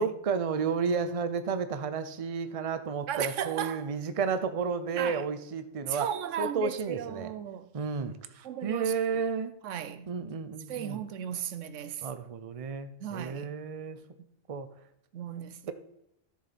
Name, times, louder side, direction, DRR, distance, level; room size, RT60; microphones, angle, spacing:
voice 1, 0.0-6.1 6.4-7.3 7.7-9.5 10.1-11.0 12.0-14.0 14.5-14.7, right 5 dB, 35° right, 0.6 m, -32 dB
voice 2, 3.1-3.9 4.9-5.2 5.9-7.7 8.4-8.9 9.6-10.1 10.7-12.1 13.0-13.5 15.1-15.7, right 9 dB, 85° right, 1.0 m, -35 dB
12.5 x 6.9 x 4.2 m
omnidirectional pair, 1.2 m